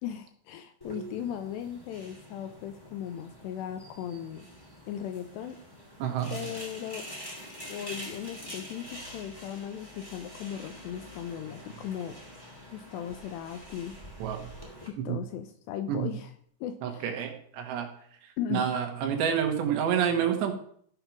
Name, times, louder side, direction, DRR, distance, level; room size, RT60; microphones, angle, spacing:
voice 1, 0.0-4.5 4.9-5.6 6.3-7.1 7.7-12.2 12.7-13.9 15.0-16.3 16.6-17.1 18.4-18.7, left 10 dB, 80° left, 9 dB, 2.6 m, -37 dB
sound 1, 0.8-14.9, equal, 10° left, 1.1 m, -45 dB
voice 2, 6.0-6.3 14.2-14.5 15.0-15.2 15.9-16.1 16.8-17.9 18.5-20.5, right 8 dB, 70° right, 5 dB, 3.4 m, -28 dB
15.0 x 5.6 x 5.9 m, 0.62 s
omnidirectional pair, 5.4 m